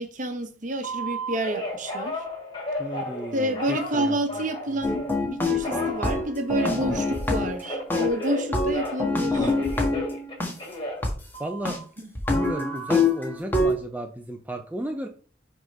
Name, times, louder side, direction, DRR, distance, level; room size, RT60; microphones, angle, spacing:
voice 1, 0.0-2.2 3.3-9.5, right 1 dB, 45° right, 1.0 m, -29 dB
Telephone, 0.8-5.2 5.6-9.1 9.3-11.8 12.3-12.8, equal, 25° left, 2.7 m, -34 dB
voice 2, 2.8-4.4 4.8-5.0 11.4-11.8 12.3-15.1, right 1 dB, 10° right, 0.5 m, -34 dB
sound 1, 4.8-7.6 7.9-10.5 11.0-11.1 11.7-11.8 12.2-13.8, left 3 dB, 10° left, 1.3 m, -25 dB
6.2 x 3.6 x 5.3 m
head